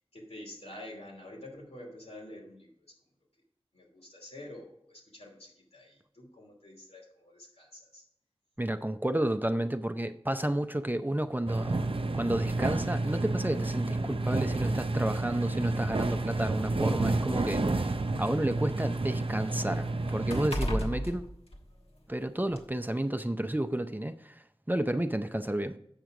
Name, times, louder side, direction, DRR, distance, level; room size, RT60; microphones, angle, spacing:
voice 1, 0.1-2.7 3.7-8.0, left 1 dB, 90° left, 2.8 m, -48 dB
voice 2, 8.6-11.9 12.1-21.2 22.1-24.3 24.7-25.8, right 1 dB, 20° right, 0.5 m, -31 dB
sound 1, 11.5-20.5, right 2 dB, 60° right, 0.5 m, -30 dB
sound 2, 13.5-13.7 14.7-14.8 15.3-15.4 16.3-18.3 18.7-22.1 22.5-22.7, equal, 70° left, 1.4 m, -37 dB
8.1 x 6.1 x 4.8 m
wide cardioid pair, 45°, 10 cm